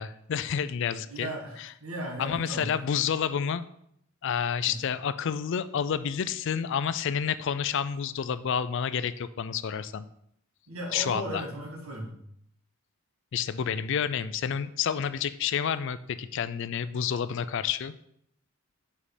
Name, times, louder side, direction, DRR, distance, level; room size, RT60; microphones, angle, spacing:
voice 1, 0.0-1.3 1.6-1.7 2.2-3.7 4.2-10.1 10.9-11.4 13.3-17.9, left 7 dB, 60° left, 14 dB, 0.4 m, -29 dB
voice 2, 1.1-2.7 4.6-4.7 10.7-12.1, right 1 dB, 85° right, 1 dB, 1.6 m, -37 dB
5.5 x 5.2 x 4.9 m, 0.72 s
head